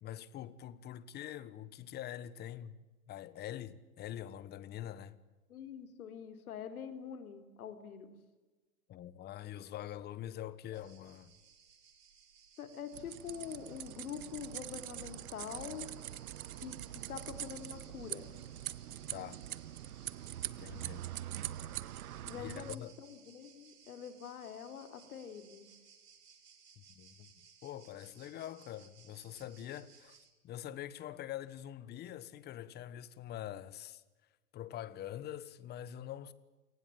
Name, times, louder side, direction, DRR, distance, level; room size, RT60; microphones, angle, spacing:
voice 1, 0.0-5.2 8.9-11.4 19.1-19.4 20.6-21.0 22.3-22.9 26.9-27.3 27.6-30.2 30.4-34.0 34.5-36.3, left 11 dB, 20° left, 1.3 m, -45 dB
voice 2, 5.5-8.1 12.6-15.9 16.6-18.3 22.2-25.7, left 8 dB, 70° left, 4.1 m, -45 dB
sound 1, 10.7-30.3, right 7 dB, 85° right, 5.4 m, -62 dB
sound 2, 12.9-22.8, right 12 dB, 70° right, 1.2 m, -43 dB
28.5 x 19.5 x 9.0 m
hypercardioid pair, 135°, 46 cm